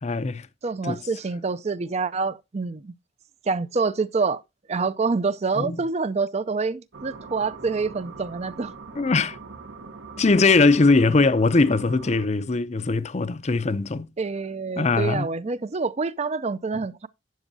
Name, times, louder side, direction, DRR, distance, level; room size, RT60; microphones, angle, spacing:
voice 1, 0.0-0.5 0.8-1.0 5.6-5.8 9.0-9.4 10.2-14.1 14.8-15.3, left 3 dB, 35° left, 0.5 m, -21 dB
voice 2, 0.6-2.9 3.5-4.4 4.7-8.7 14.2-17.1, right 4 dB, 35° right, 0.4 m, -27 dB
sound 1, 6.9-12.3, right 4 dB, 75° right, 1.1 m, -42 dB
12.0 x 8.2 x 2.7 m
head